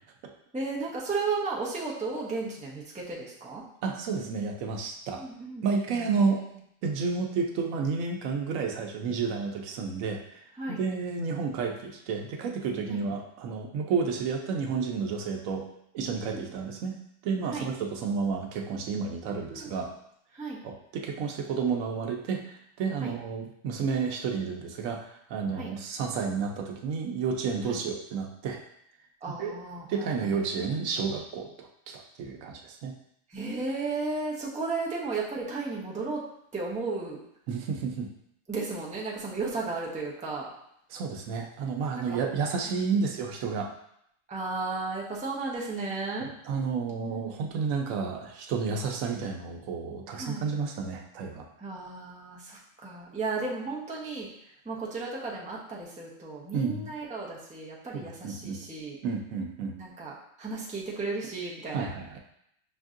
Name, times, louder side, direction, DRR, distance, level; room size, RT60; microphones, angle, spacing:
voice 1, 0.5-3.6 5.2-5.6 5.9-6.2 10.6-10.8 12.9-13.0 16.2-16.4 17.5-17.7 19.3-19.7 20.3-20.6 23.0-23.1 25.6-25.7 27.7-27.8 29.2-30.3 33.3-36.2 36.5-37.2 38.5-40.5 42.0-42.2 42.9-43.0 44.3-46.3 47.0-47.3 50.1-50.5 51.6-54.3 54.6-59.0 59.8-60.1 60.4-61.9, right 3 dB, 10° right, -4 dB, 0.4 m, -34 dB
voice 2, 3.8-5.2 5.6-6.4 6.8-10.4 10.7-15.7 15.9-17.0 17.2-19.9 20.6-28.6 29.3-29.5 29.9-32.9 37.5-38.1 40.9-43.7 46.2-51.5 56.5-56.9 57.9-58.6 59.0-59.7 61.7-62.2, right 5 dB, 90° right, 2 dB, 1.0 m, -31 dB
6.0 x 2.6 x 2.4 m, 0.74 s
omnidirectional pair, 1.3 m